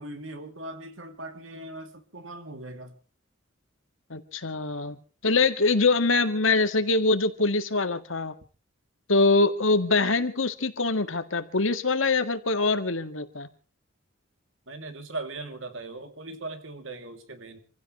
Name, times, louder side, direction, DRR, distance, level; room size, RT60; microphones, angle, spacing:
voice 1, 0.0-3.0 14.7-17.6, right 2 dB, 75° right, 2.8 m, -39 dB
voice 2, 4.1-5.0 5.2-8.3 9.1-13.5, left 3 dB, 80° left, 2.0 m, -24 dB
27.5 x 16.0 x 3.2 m
head